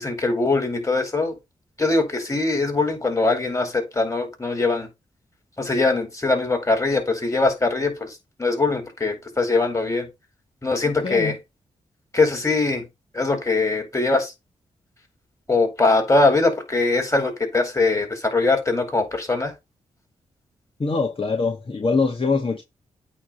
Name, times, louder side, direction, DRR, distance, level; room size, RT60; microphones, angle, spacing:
voice 1, 0.0-1.3 1.8-4.9 5.6-10.1 10.6-11.3 12.1-12.8 13.1-14.3 15.5-19.5, left 3 dB, 25° left, 4.6 m, -22 dB
voice 2, 11.0-11.3 20.8-22.6, left 4 dB, 40° left, 1.8 m, -23 dB
8.7 x 3.3 x 6.4 m
cardioid pair, 50°, 14 cm